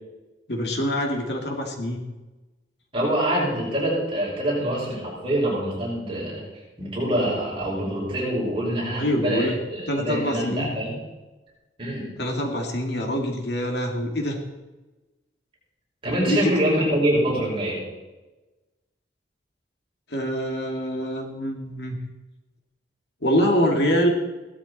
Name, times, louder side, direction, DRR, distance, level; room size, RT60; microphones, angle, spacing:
voice 1, 0.5-2.0 9.0-9.6 9.9-10.8 12.2-14.4 16.3-16.5 20.1-22.0 23.2-24.1, equal, 65° left, 2 dB, 2.4 m, -25 dB
voice 2, 2.9-6.4 6.8-11.0 11.8-12.1 16.0-17.8, right 1 dB, 30° right, -5 dB, 5.9 m, -25 dB
17.0 x 13.0 x 4.3 m, 1.1 s
head